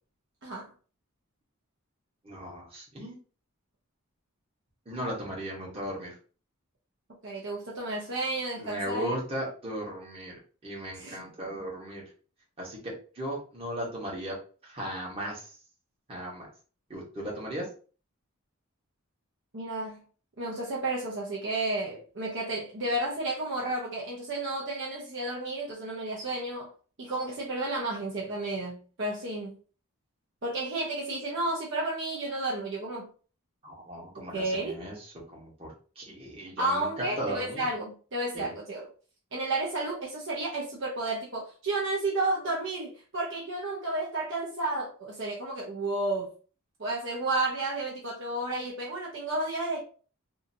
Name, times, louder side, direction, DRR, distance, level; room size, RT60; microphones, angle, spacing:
voice 1, 2.2-3.2 4.8-6.2 8.6-10.4 10.6-12.0 12.6-14.4 14.6-15.6 16.1-16.5 16.9-17.7 33.6-37.7 38.3-38.5, right 1 dB, 25° right, 1.1 m, -37 dB
voice 2, 7.2-9.1 11.0-11.2 19.5-20.0 20.4-26.7 27.0-29.6 30.4-33.1 34.1-34.8 36.6-38.9 39.3-46.3 46.8-49.8, right 2 dB, 55° right, 0.7 m, -32 dB
2.7 x 2.5 x 2.6 m
head